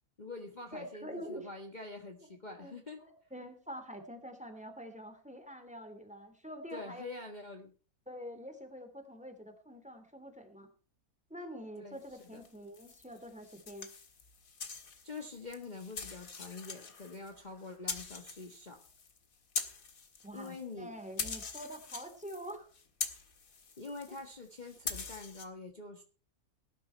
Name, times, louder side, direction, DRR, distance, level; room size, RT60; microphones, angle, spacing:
voice 1, 0.2-3.0 6.7-7.7 11.8-12.4 15.0-18.8 20.3-20.9 23.8-26.0, left 3 dB, 30° left, 4 dB, 1.7 m, -46 dB
voice 2, 0.7-1.5 2.6-7.1 8.1-10.7 11.3-13.9 20.2-22.7, equal, 5° right, 7 dB, 2.9 m, -46 dB
sound 1, 12.1-20.7 21.0-25.5, left 5 dB, 70° left, 2.2 m, -43 dB
18.0 x 11.0 x 4.5 m, 0.38 s
omnidirectional pair, 1.5 m